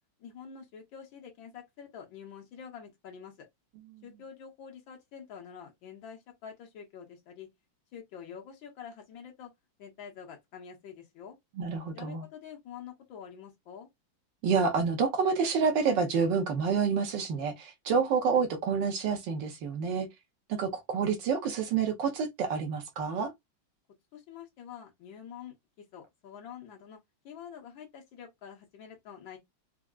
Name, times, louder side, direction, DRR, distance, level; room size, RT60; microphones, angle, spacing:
voice 1, 0.2-3.5 4.0-7.5 7.9-9.5 9.8-11.4 11.9-13.9 24.1-27.0 27.2-29.4, left 7 dB, 70° left, 1.7 m, -47 dB
voice 2, 11.6-12.2 14.4-20.1 20.5-23.3, right 5 dB, 70° right, 1.3 m, -28 dB
4.5 x 2.0 x 2.3 m
omnidirectional pair, 2.2 m